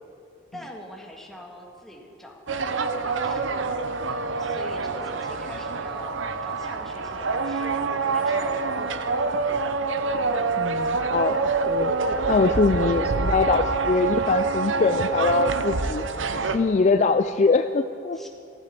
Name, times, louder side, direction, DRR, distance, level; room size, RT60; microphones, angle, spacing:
voice 1, 0.5-3.6 4.1-9.1 12.1-12.2 12.7-13.0 15.4-15.6 18.1-18.3, equal, ahead, 0 dB, 1.8 m, -44 dB
sound 1, 2.5-16.6, right 4 dB, 80° right, 0.8 m, -26 dB
voice 2, 10.6-11.4 11.7-11.9 12.3-16.0 16.5-18.2, left 4 dB, 40° left, 9 dB, 0.4 m, -22 dB
15.0 x 15.0 x 6.0 m, 2.7 s
head